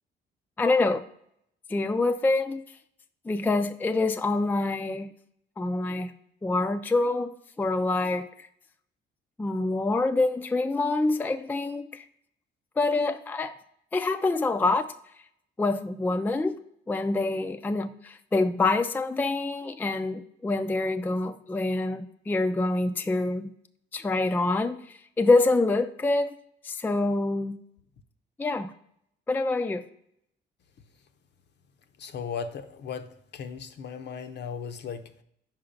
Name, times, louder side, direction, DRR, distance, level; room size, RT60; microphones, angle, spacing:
voice 1, 0.6-1.1 1.7-2.6 3.3-5.1 5.6-6.1 6.4-8.5 9.4-12.0 12.8-13.5 13.9-14.9 15.6-16.6 16.9-23.5 23.9-26.4 26.6-27.6 28.4-28.7 29.3-29.8, left 2 dB, 10° left, 8 dB, 0.4 m, -26 dB
voice 2, 32.0-35.2, left 6 dB, 60° left, 8 dB, 0.7 m, -37 dB
5.8 x 4.8 x 5.1 m, 0.72 s
cardioid pair, 90°, 20 cm